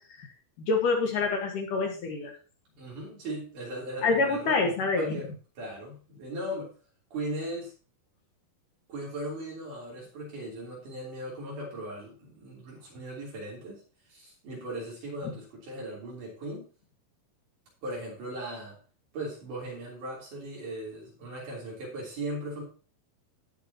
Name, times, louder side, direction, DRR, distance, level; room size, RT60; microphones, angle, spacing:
voice 1, 0.6-2.3 4.0-5.2, left 4 dB, 60° left, 1 dB, 2.9 m, -26 dB
voice 2, 2.8-4.6 5.0-5.3 5.6-6.7 7.1-7.7 8.9-13.8 14.1-16.7 17.8-18.8 19.1-22.6, right 1 dB, 55° right, -4 dB, 4.8 m, -38 dB
17.5 x 6.2 x 2.9 m, 0.36 s
omnidirectional pair, 4.4 m